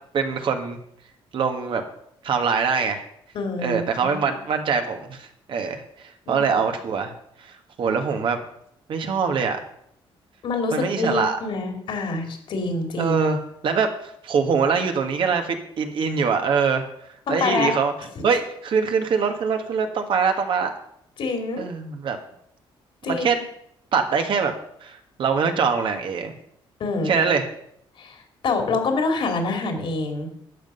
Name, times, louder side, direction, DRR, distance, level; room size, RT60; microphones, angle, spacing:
voice 1, 0.1-0.8 1.3-1.8 2.2-3.0 3.6-7.1 7.4-8.4 8.9-9.6 10.7-11.4 13.0-13.4 13.6-16.9 17.3-17.9 18.2-20.7 21.6-22.2 23.1-23.4 23.9-24.5 24.8-26.3 27.0-27.5, right 5 dB, 60° right, 5 dB, 1.5 m, -23 dB
voice 2, 3.3-4.1 6.3-6.5 10.4-13.2 17.3-17.7 21.2-21.7 23.0-23.3 26.8-27.2 28.0-30.3, left 3 dB, 60° left, 4 dB, 2.5 m, -26 dB
12.0 x 7.6 x 5.5 m, 0.71 s
cardioid pair, 115°, 10 cm